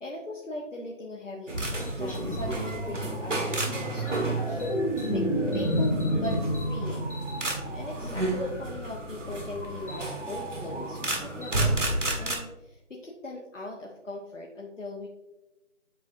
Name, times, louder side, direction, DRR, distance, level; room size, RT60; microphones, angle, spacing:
voice 1, 0.0-4.6 4.9-5.3 5.5-6.4 6.7-7.2 7.7-11.9 12.2-15.1, left 1 dB, 70° left, -1 dB, 1.0 m, -40 dB
sound 1, 1.5-12.4, right 2 dB, 70° right, 1.5 m, -31 dB
sound 2, 3.8-8.3 10.7-10.9, equal, 40° left, 0.9 m, -29 dB
8.1 x 5.1 x 2.6 m, 1.0 s
figure-of-eight pair, 170°, 38 cm